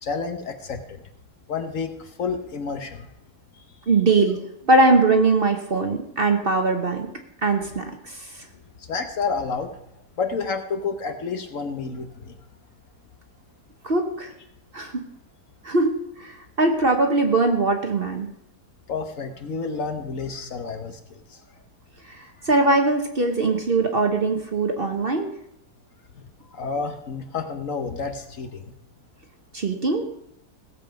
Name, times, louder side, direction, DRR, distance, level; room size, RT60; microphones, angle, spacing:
voice 1, 0.0-1.0 1.5-3.1 8.8-9.8 10.2-12.4 18.9-21.4 26.2-26.3 26.5-28.6, left 5 dB, 55° left, 6 dB, 1.2 m, -30 dB
voice 2, 3.9-4.4 4.7-7.1 7.4-8.2 13.8-14.3 14.7-15.0 15.6-18.3 22.5-25.3 29.5-30.1, right 3 dB, 40° right, 4 dB, 1.2 m, -21 dB
16.5 x 7.6 x 5.1 m, 0.77 s
omnidirectional pair, 1.8 m